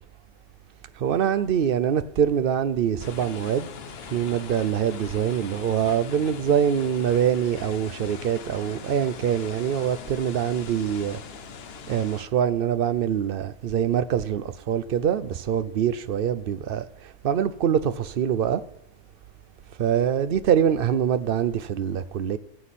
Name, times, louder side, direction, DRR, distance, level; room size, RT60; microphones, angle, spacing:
voice 1, 1.0-3.7 4.1-11.2 11.9-18.6 19.8-22.4, right 8 dB, 55° right, 0.7 m, -24 dB
sound 1, 3.0-12.3, left 7 dB, 60° left, 0.9 m, -41 dB
19.0 x 7.9 x 4.2 m
omnidirectional pair, 1.3 m